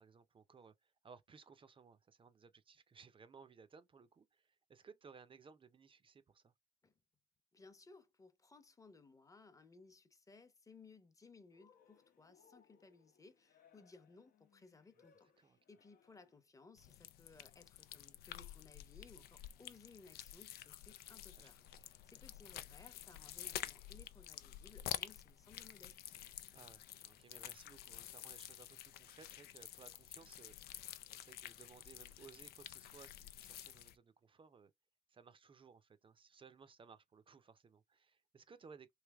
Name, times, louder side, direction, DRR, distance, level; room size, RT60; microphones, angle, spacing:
voice 1, 0.0-6.5 15.0-15.1 15.4-15.6 21.3-21.5 26.5-34.7 35.1-38.9, right 5 dB, 35° right, 0.6 m, -61 dB
voice 2, 7.5-26.0, left 4 dB, 20° left, 0.8 m, -62 dB
Cheering, 11.5-16.5, left 7 dB, 65° left, 0.8 m, -71 dB
sound 1, 16.8-33.9, left 12 dB, 80° left, 0.4 m, -50 dB
3.3 x 2.8 x 3.4 m
cardioid pair, 85°, 16 cm